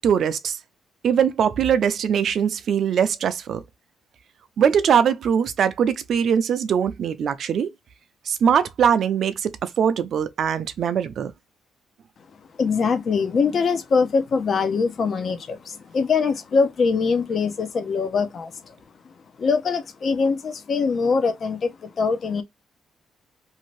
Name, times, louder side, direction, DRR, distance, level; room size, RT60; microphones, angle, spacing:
voice 1, 0.0-0.6 1.0-3.6 4.6-7.7 8.3-11.3, right 8 dB, 60° right, 0.5 m, -21 dB
voice 2, 12.6-18.7 19.0-19.1 19.4-22.4, left 5 dB, 50° left, 0.7 m, -23 dB
2.7 x 2.5 x 3.1 m
cardioid pair, 90°, 0 cm